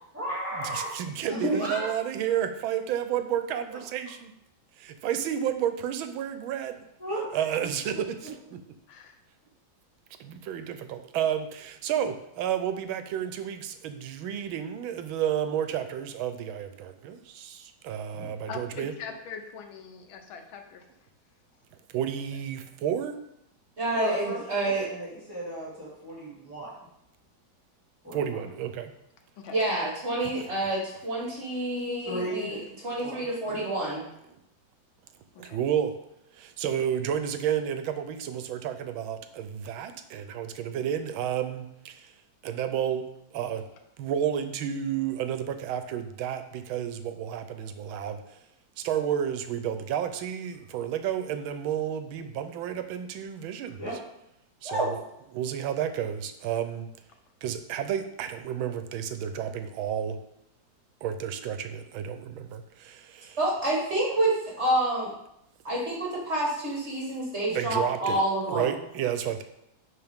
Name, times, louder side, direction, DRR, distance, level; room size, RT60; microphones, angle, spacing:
voice 1, 0.1-1.9 3.7-3.8 7.0-8.0 18.2-18.3 23.9-26.7 28.0-28.4 32.0-32.6 33.0-33.6 53.8-54.0 68.0-68.2, right 1 dB, 5° right, -8 dB, 2.4 m, -36 dB
voice 2, 0.6-4.3 4.8-6.8 7.3-8.6 10.2-18.9 21.9-23.2 28.1-28.9 30.2-30.4 35.4-35.9 36.3-42.1 42.4-43.6 44.0-48.2 48.8-53.8 54.6-55.0 55.3-56.9 57.4-60.2 61.0-63.4 67.5-69.4, right 9 dB, 85° right, 9 dB, 1.5 m, -31 dB
voice 3, 1.3-1.7 23.8-24.9 29.5-32.6 32.8-34.0 54.6-54.9 63.4-65.1 65.6-68.7, right 1 dB, 35° right, -4 dB, 1.7 m, -28 dB
voice 4, 8.9-9.2 18.5-20.8 22.6-22.7 24.2-24.4 29.4-29.5 35.3-35.6, left 6 dB, 85° left, 5 dB, 1.7 m, -42 dB
10.5 x 4.1 x 3.6 m, 0.80 s
omnidirectional pair, 2.2 m